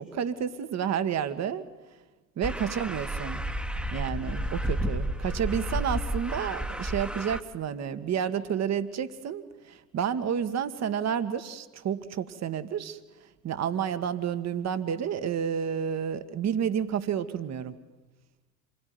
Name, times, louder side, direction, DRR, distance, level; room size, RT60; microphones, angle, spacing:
voice 1, 0.0-1.6 2.4-3.4 3.9-13.0 13.4-17.7, right 8 dB, 35° right, 11 dB, 1.7 m, -30 dB
sound 1, 2.4-7.4, right 1 dB, ahead, 1.6 m, -31 dB
27.5 x 21.0 x 9.5 m, 1.2 s
figure-of-eight pair, 65°, 47 cm